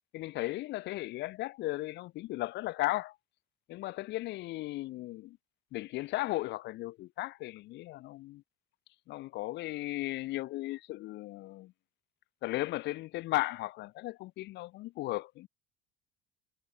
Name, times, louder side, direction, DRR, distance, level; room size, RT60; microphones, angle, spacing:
voice 1, 0.1-3.2 3.7-5.4 5.7-8.4 9.1-11.7 12.4-15.5, left 18 dB, 65° left, 3.0 m, -36 dB
hypercardioid pair, 75°, 19 cm